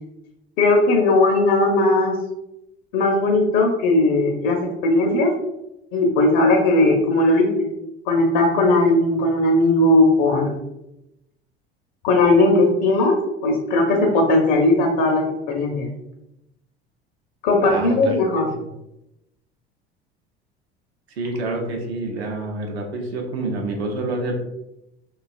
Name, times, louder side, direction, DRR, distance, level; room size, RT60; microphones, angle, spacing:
voice 1, 0.6-2.2 2.9-5.3 5.9-7.7 8.1-10.6 12.0-13.2 13.4-15.9 17.4-18.5, left 2 dB, 50° left, 1 dB, 0.5 m, -18 dB
voice 2, 17.6-18.7 21.1-24.3, right 2 dB, 80° right, 2 dB, 0.6 m, -28 dB
2.8 x 2.3 x 2.4 m, 0.88 s
figure-of-eight pair, 65°, 32 cm